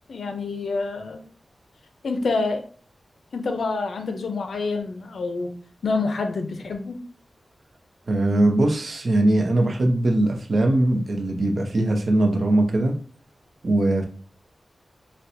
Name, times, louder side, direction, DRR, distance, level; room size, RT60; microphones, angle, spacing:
voice 1, 0.1-1.2 2.0-2.6 3.3-5.5 5.8-7.0, left 3 dB, 80° left, 6 dB, 0.6 m, -27 dB
voice 2, 8.1-13.0 13.6-14.1, right 1 dB, 55° right, 3 dB, 0.6 m, -21 dB
4.2 x 2.2 x 2.6 m, 0.42 s
wide cardioid pair, 130°, 0 cm